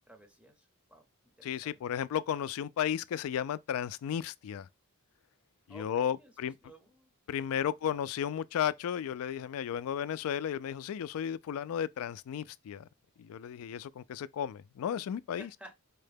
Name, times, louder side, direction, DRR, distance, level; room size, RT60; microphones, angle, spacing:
voice 1, 0.1-1.1 1.4-1.8 5.7-7.1 7.5-7.7 15.4-15.7, equal, 5° right, 0.6 m, -54 dB
voice 2, 1.4-4.7 5.7-6.5 7.3-12.9 13.2-15.5, left 9 dB, 65° left, 0.3 m, -34 dB
4.6 x 2.1 x 3.3 m
head